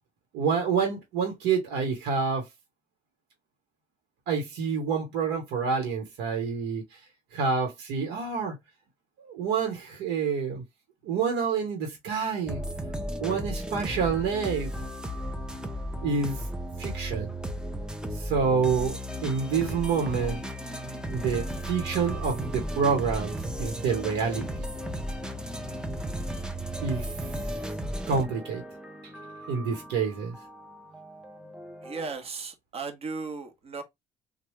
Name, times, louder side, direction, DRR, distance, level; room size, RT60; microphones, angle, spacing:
voice 1, 0.3-2.4 4.3-6.8 7.3-8.5 9.2-10.6 11.0-12.6 13.2-14.7 16.0-16.4 16.8-17.3 18.1-20.4 21.1-23.3 23.6-24.7 26.8-27.1 28.1-28.6 29.5-30.3, right 5 dB, 90° right, 1.0 m, -28 dB
sound 1, 12.5-32.1, equal, 5° right, 0.6 m, -35 dB
voice 2, 31.8-33.8, right 4 dB, 35° right, 1.0 m, -36 dB
3.1 x 2.2 x 3.1 m
cardioid pair, 110°, 17 cm